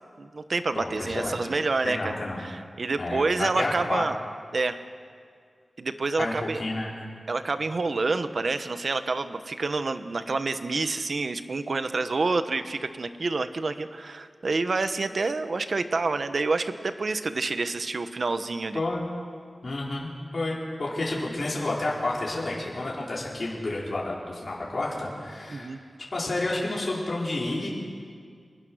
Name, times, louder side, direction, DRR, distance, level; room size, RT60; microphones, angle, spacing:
voice 1, 0.2-2.1 2.4-4.1 4.5-4.8 5.8-6.6 7.3-18.8 25.5-25.8, right 3 dB, 60° right, 10 dB, 1.2 m, -28 dB
voice 2, 0.7-1.4 1.8-2.4 3.0-4.0 6.2-6.3 6.6-6.9 18.7-19.1 19.6-25.7 26.1-27.7, left 2 dB, 50° left, -5 dB, 5.0 m, -30 dB
27.0 x 20.5 x 6.4 m, 2.1 s
wide cardioid pair, 80°, 0 cm